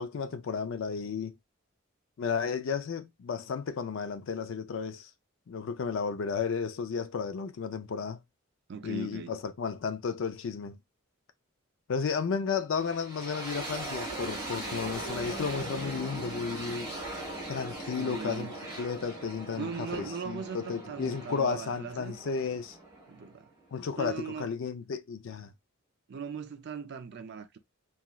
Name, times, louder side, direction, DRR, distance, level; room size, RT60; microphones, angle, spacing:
voice 1, 0.0-1.3 2.2-5.1 5.5-8.2 8.8-10.8 11.9-16.9 17.5-22.8 23.7-25.5, left 5 dB, 65° left, 0.4 m, -33 dB
voice 2, 8.7-9.4 18.0-18.5 19.6-22.1 23.1-23.5 24.0-24.5 26.1-27.6, right 6 dB, 55° right, 0.4 m, -39 dB
sound 1, 12.8-23.7, right 2 dB, 20° right, 1.3 m, -40 dB
2.9 x 2.4 x 2.3 m
head